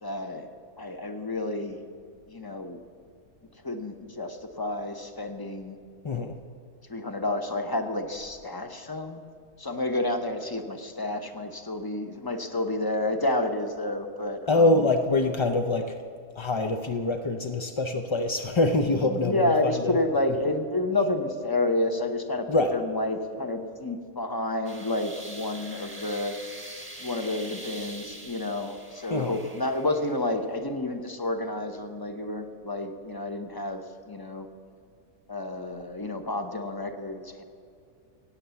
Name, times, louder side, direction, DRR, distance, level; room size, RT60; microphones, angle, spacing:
voice 1, 0.0-1.8 2.3-2.8 3.6-5.8 6.9-9.2 9.6-14.7 19.1-26.4 27.0-34.5 35.3-37.4, left 2 dB, 20° left, 7 dB, 0.8 m, -30 dB
voice 2, 6.0-6.4 14.5-15.9 16.3-20.0 22.5-22.8 29.1-29.4, left 2 dB, 50° left, 5 dB, 0.3 m, -24 dB
sound 1, 24.6-30.3, right 1 dB, 10° right, 1.3 m, -44 dB
16.0 x 9.0 x 7.0 m, 2.4 s
omnidirectional pair, 1.5 m